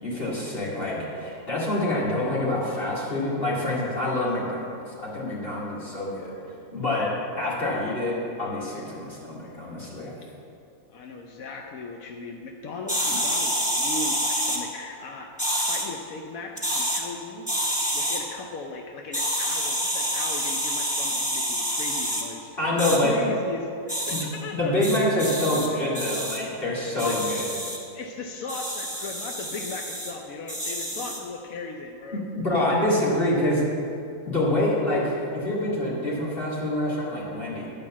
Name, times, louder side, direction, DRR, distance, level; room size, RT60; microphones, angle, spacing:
voice 1, 0.0-4.7 5.0-6.3 6.7-10.1 22.6-23.1 24.1-24.2 24.5-27.5 32.3-33.6 34.2-37.7, left 1 dB, 45° left, -6 dB, 2.6 m, -26 dB
voice 2, 10.9-17.5 17.9-22.7 23.0-24.8 26.7-27.2 27.9-32.2, left 3 dB, 85° left, 2 dB, 1.1 m, -37 dB
sound 1, 12.9-14.6 15.4-15.9 16.5-17.0 17.5-18.2 19.1-22.2 22.8-23.0 23.9-24.2 24.8-25.7 25.9-26.4 27.0-27.8 28.5-30.1 30.5-31.2, equal, 5° left, 1.4 m, -27 dB
10.5 x 5.1 x 7.2 m, 2.6 s
omnidirectional pair, 1.4 m